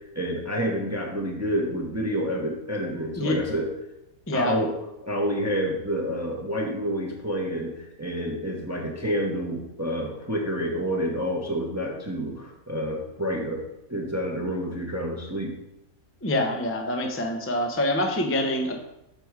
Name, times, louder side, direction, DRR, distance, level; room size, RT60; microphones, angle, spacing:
voice 1, 0.1-3.7 4.3-4.7 5.0-7.7 8.0-13.6 13.9-15.5, equal, 15° right, 0 dB, 0.7 m, -28 dB
voice 2, 16.2-18.8, left 1 dB, 20° left, 3 dB, 0.4 m, -25 dB
6.9 x 4.6 x 4.7 m, 0.87 s
omnidirectional pair, 1.6 m